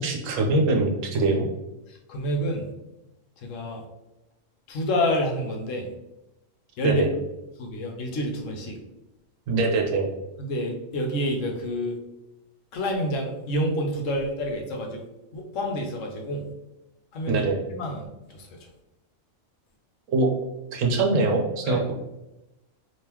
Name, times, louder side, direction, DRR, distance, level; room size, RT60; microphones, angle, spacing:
voice 1, 0.0-1.5 6.8-7.1 9.5-10.1 17.3-17.6 20.1-20.3 20.7-21.9, right 3 dB, 75° right, 1 dB, 1.0 m, -23 dB
voice 2, 1.9-2.7 3.4-3.8 4.7-5.9 6.8-7.0 7.6-8.8 10.4-12.0 12.7-15.0 15.3-16.5 17.1-17.4 17.7-18.6 21.7-21.8, equal, 75° left, 1 dB, 1.0 m, -28 dB
3.6 x 2.8 x 2.9 m, 0.95 s
omnidirectional pair, 1.4 m